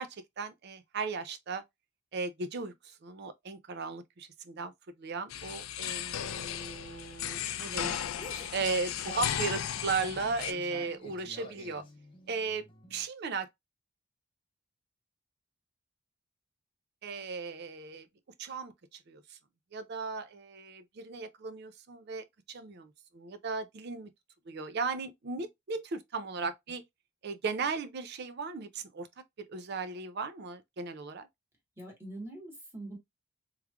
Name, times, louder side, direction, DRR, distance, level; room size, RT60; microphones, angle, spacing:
voice 1, 0.0-1.6 2.1-4.7 5.0-8.0 8.5-11.8 12.3-13.5 17.0-18.1 18.4-19.4 19.7-24.1 24.5-26.8 27.2-29.1 29.4-31.3, right 4 dB, 50° right, 0.4 m, -36 dB
sound 1, 5.3-10.5, left 10 dB, 75° left, 0.4 m, -35 dB
sound 2, 6.3-13.1, left 2 dB, 25° left, 0.6 m, -52 dB
voice 2, 31.8-33.0, equal, 10° right, 1.2 m, -44 dB
3.5 x 3.2 x 2.3 m
head